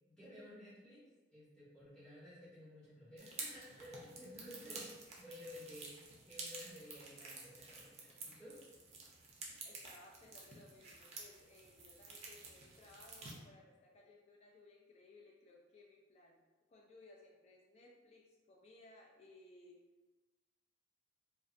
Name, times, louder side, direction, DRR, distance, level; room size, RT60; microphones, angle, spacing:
voice 1, 0.0-1.0 1.3-4.9 5.2-6.0 6.3-8.6, left 1 dB, 5° left, -13 dB, 0.8 m, -54 dB
sound 1, 3.2-13.3, right 3 dB, 35° right, 0.4 m, -51 dB
voice 2, 9.6-16.4 16.7-19.8, left 2 dB, 35° left, -2 dB, 0.3 m, -61 dB
2.5 x 2.1 x 2.4 m, 1.2 s
head